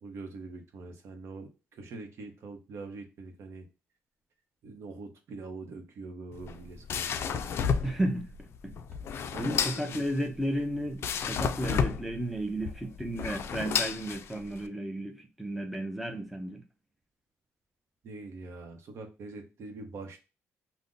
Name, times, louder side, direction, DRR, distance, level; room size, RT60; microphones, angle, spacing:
voice 1, 0.0-3.7 4.6-8.0 9.3-10.1 18.0-20.2, right 3 dB, 65° right, 0.8 m, -44 dB
sound 1, 6.3-14.7, left 7 dB, 60° left, 0.3 m, -32 dB
voice 2, 7.8-8.7 9.4-16.6, right 1 dB, 5° right, 0.6 m, -33 dB
2.5 x 2.1 x 3.7 m
cardioid pair, 115°, 5 cm